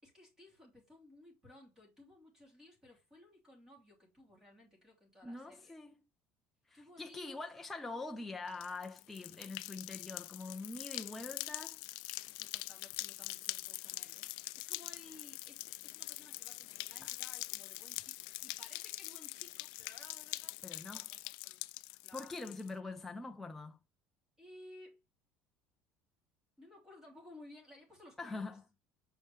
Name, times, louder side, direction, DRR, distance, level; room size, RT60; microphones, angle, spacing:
voice 1, 0.0-5.7 6.7-7.4 10.5-10.6 12.2-21.6 22.0-22.4 24.4-25.0 26.6-28.6, left 1 dB, 10° right, 2.9 m, -58 dB
voice 2, 5.2-5.9 6.7-11.8 17.0-17.1 20.6-21.1 22.1-23.8 28.2-28.6, left 3 dB, 5° left, 0.5 m, -44 dB
sound 1, 8.5-22.7, left 22 dB, 85° left, 0.4 m, -44 dB
6.6 x 4.9 x 3.3 m
cardioid pair, 180°, 5 cm